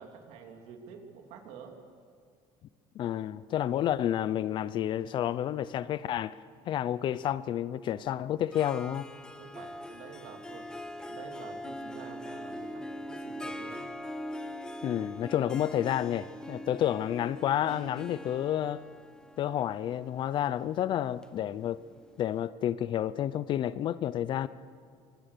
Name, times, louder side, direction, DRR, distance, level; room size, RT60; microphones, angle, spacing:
voice 1, 0.0-1.8 9.4-10.7 11.1-13.9, right 6 dB, 70° right, 4 dB, 3.3 m, -48 dB
voice 2, 2.9-6.4 6.7-9.1 14.8-18.8 19.4-21.8 22.2-24.5, left 11 dB, 45° left, 17 dB, 0.6 m, -30 dB
Harp, 8.5-22.1, equal, 5° left, 1.2 m, -42 dB
25.0 x 24.5 x 6.8 m, 2.2 s
cardioid pair, 150°, 12 cm